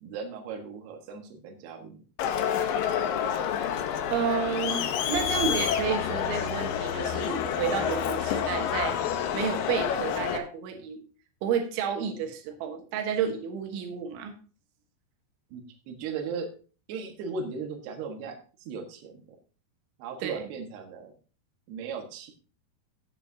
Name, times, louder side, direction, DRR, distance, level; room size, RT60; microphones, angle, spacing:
voice 1, 0.0-2.0 15.5-16.5 16.9-19.2 20.0-21.1 21.7-22.3, right 5 dB, 70° right, 3 dB, 3.4 m, -37 dB
Crowd, 2.2-10.4, left 8 dB, 75° left, 2.0 m, -28 dB
voice 2, 4.1-9.0 9.3-11.0 11.4-14.3 20.2-20.5, right 7 dB, 90° right, 4 dB, 3.7 m, -31 dB
14.5 x 8.3 x 2.7 m, 0.37 s
omnidirectional pair, 5.2 m